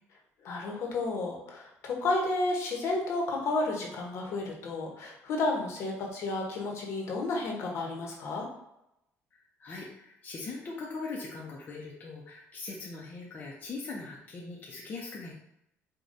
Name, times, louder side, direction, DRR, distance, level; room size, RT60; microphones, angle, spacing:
voice 1, 0.4-8.5, left 2 dB, 55° left, 0 dB, 0.9 m, -32 dB
voice 2, 9.3-15.3, left 3 dB, 35° left, -3 dB, 0.5 m, -41 dB
4.9 x 2.2 x 2.6 m, 0.84 s
cardioid pair, 150°, 6 cm